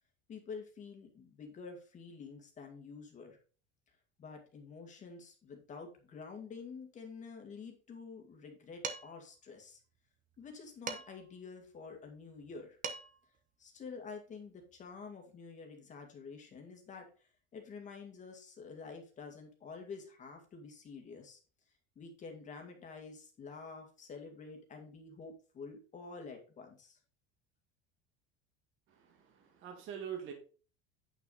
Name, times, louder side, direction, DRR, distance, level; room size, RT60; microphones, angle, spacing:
voice 1, 0.3-3.4 4.2-9.8 10.4-12.8 13.6-17.1 17.5-21.4 22.0-27.0, left 5 dB, 25° left, 3 dB, 2.1 m, -48 dB
Dishes pots and pans, 8.8-9.3 10.9-11.3 12.5-12.6 12.8-13.3, right 5 dB, 25° right, 1.0 m, -41 dB
voice 2, 29.0-30.3, right 8 dB, 45° right, 3 dB, 2.1 m, -44 dB
8.9 x 6.0 x 4.0 m, 0.37 s
cardioid pair, 170°, 29 cm